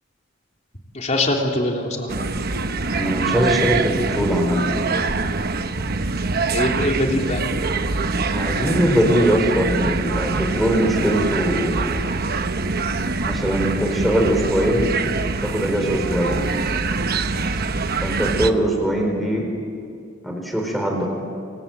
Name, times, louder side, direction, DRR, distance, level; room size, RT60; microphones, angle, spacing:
voice 1, 0.9-2.1 6.5-7.4, left 1 dB, 35° left, 1 dB, 3.5 m, -22 dB
sound 1, 2.1-18.5, right 3 dB, 50° right, 1.1 m, -24 dB
voice 2, 2.9-4.8 8.3-11.9 13.2-14.9 15.4-16.4 18.0-19.5 20.2-21.1, equal, ahead, 1 dB, 4.1 m, -21 dB
27.5 x 23.5 x 9.0 m, 2.3 s
head